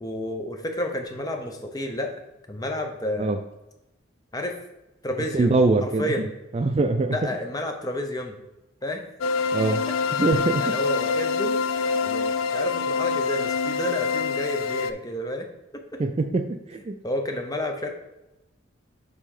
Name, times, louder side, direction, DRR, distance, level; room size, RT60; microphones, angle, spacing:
voice 1, 0.0-2.2 2.5-3.4 4.3-4.6 5.0-6.3 7.1-8.3 8.8-9.0 10.6-11.6 12.0-15.5 15.7-16.0 17.0-17.9, left 1 dB, 20° left, 4 dB, 0.7 m, -30 dB
voice 2, 5.3-6.1 6.5-7.2 9.5-9.8 10.2-10.6 16.0-17.0, right 3 dB, 30° right, 7 dB, 0.3 m, -23 dB
sound 1, 9.2-14.9, left 5 dB, 85° left, 0.4 m, -25 dB
5.5 x 4.1 x 4.9 m, 0.97 s
head